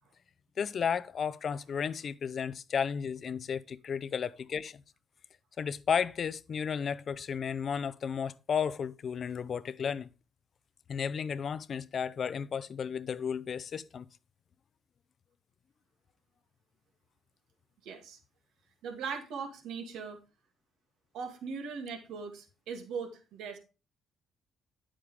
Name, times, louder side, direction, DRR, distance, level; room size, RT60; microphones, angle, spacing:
voice 1, 0.6-4.8 5.6-10.1 10.9-14.1, left 7 dB, 55° left, 0.6 m, -33 dB
voice 2, 17.8-18.2 18.8-20.2 21.1-23.6, right 5 dB, 80° right, 2.4 m, -39 dB
10.0 x 8.8 x 3.4 m
supercardioid pair, 65°, 0 cm